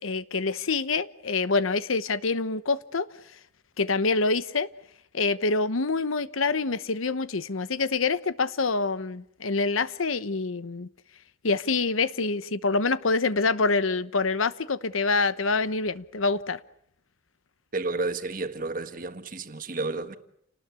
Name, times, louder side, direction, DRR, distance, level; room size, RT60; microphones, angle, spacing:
voice 1, 0.0-3.1 3.8-4.7 5.1-10.9 11.4-16.6, left 3 dB, 90° left, 1.0 m, -26 dB
voice 2, 17.7-20.2, right 3 dB, 40° right, 1.5 m, -31 dB
29.0 x 19.5 x 8.3 m
head